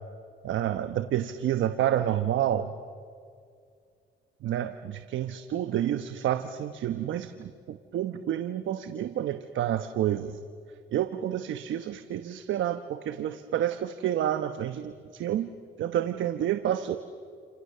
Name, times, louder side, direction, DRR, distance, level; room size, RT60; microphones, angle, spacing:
voice 1, 0.4-2.7 4.4-10.4 10.9-15.5 15.8-17.0, right 11 dB, 75° right, 9 dB, 1.1 m, -29 dB
29.5 x 28.0 x 6.8 m, 2.3 s
cardioid pair, 90°, 20 cm